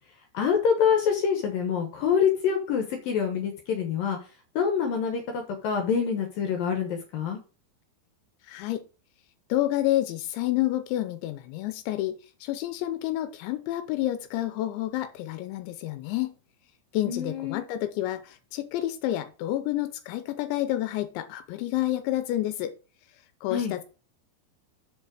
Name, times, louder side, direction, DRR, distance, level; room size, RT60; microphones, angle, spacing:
voice 1, 0.3-4.2 4.6-7.4 17.0-17.6 23.5-23.7, left 7 dB, 65° left, 4 dB, 2.5 m, -26 dB
voice 2, 8.5-8.8 9.5-16.3 16.9-22.7 23.4-23.8, left 14 dB, 85° left, 10 dB, 2.9 m, -29 dB
6.8 x 5.4 x 6.3 m, 0.34 s
omnidirectional pair, 5.3 m